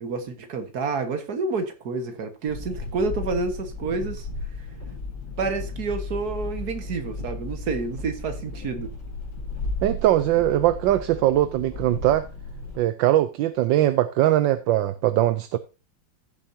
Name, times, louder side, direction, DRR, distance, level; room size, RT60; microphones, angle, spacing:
voice 1, 0.0-4.3 4.6-4.7 5.4-8.9, right 4 dB, 55° right, 1.9 m, -29 dB
sound 1, 2.5-12.8, left 2 dB, 75° left, 3.3 m, -34 dB
voice 2, 9.8-12.3 12.8-15.6, right 13 dB, 75° right, 1.3 m, -21 dB
15.5 x 7.0 x 2.7 m
omnidirectional pair, 2.1 m